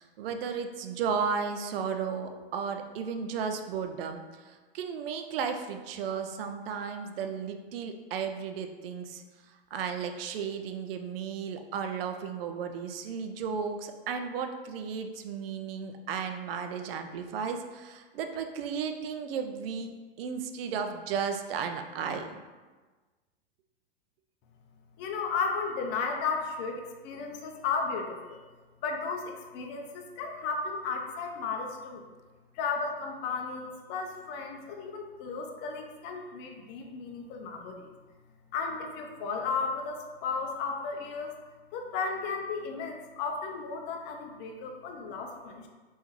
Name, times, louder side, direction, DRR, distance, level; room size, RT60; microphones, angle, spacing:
voice 1, 0.0-22.4, right 6 dB, 65° right, 6 dB, 0.5 m, -34 dB
voice 2, 25.0-28.4 28.8-32.0 32.5-37.9 38.5-41.3 41.7-45.7, left 5 dB, 35° left, 2 dB, 0.5 m, -34 dB
3.5 x 2.6 x 3.0 m, 1.3 s
hypercardioid pair, 110°, 31 cm